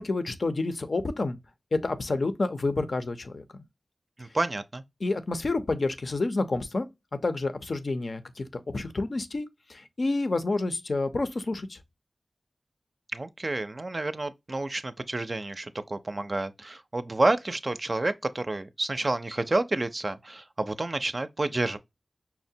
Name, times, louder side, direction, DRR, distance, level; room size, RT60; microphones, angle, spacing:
voice 1, 0.0-1.4 1.7-3.6 5.0-6.9 7.2-11.8, left 3 dB, 65° left, 0.5 m, -29 dB
voice 2, 4.2-4.8 13.1-21.8, right 2 dB, 45° right, 0.4 m, -29 dB
5.6 x 2.1 x 2.6 m
cardioid pair, 45°, 0 cm